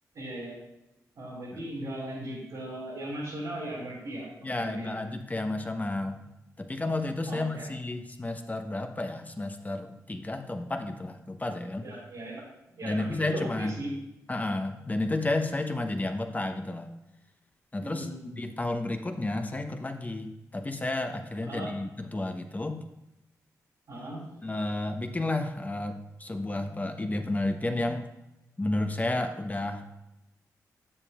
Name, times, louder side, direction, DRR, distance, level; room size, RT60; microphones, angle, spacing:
voice 1, 0.1-0.6 1.1-4.9 5.2-5.3 7.3-7.8 11.7-12.4 12.7-14.0 17.8-18.3 21.4-21.7 23.9-24.5, right 1 dB, 70° right, -6 dB, 2.6 m, -38 dB
voice 2, 4.4-6.2 6.6-11.8 12.8-13.7 14.3-16.9 17.7-18.1 18.3-22.8 24.4-28.1 28.6-29.8, left 2 dB, 25° left, 6 dB, 1.0 m, -31 dB
9.7 x 7.0 x 2.5 m, 0.93 s
supercardioid pair, 50°, 7 cm